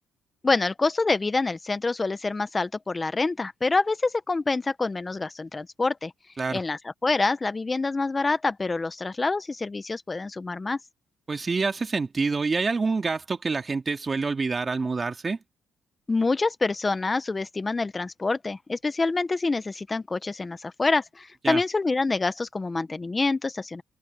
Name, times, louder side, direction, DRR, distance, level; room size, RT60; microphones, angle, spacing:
voice 1, 0.4-6.1 6.5-10.8 16.1-23.8, left 3 dB, 25° left, 0.9 m, -26 dB
voice 2, 11.3-15.4 21.4-21.6, right 4 dB, 30° right, 2.7 m, -27 dB
open air
cardioid pair, 90°, 0 cm